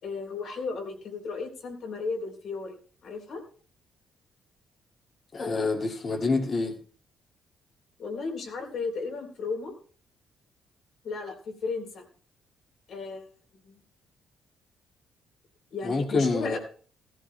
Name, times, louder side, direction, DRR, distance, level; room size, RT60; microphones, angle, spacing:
voice 1, 0.0-3.4 8.0-9.7 11.0-12.0 12.9-13.3 13.6-13.8 15.7-16.6, left 4 dB, 65° left, 3.4 m, -34 dB
voice 2, 5.3-6.8 15.8-16.6, left 3 dB, 45° left, 2.1 m, -27 dB
16.0 x 14.0 x 2.2 m
cardioid pair, 90°, 0 cm